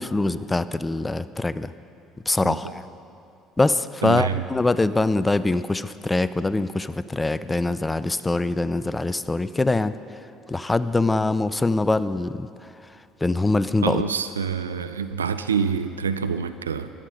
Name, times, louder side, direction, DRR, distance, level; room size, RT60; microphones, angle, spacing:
voice 1, 0.0-1.7 2.3-2.8 3.6-10.0 10.5-12.5 13.2-14.0, left 2 dB, 15° left, 15 dB, 0.5 m, -23 dB
voice 2, 4.0-4.4 13.8-16.9, right 6 dB, 90° right, 11 dB, 0.5 m, -26 dB
16.0 x 11.5 x 5.3 m, 2.7 s
hypercardioid pair, 60°, 0 cm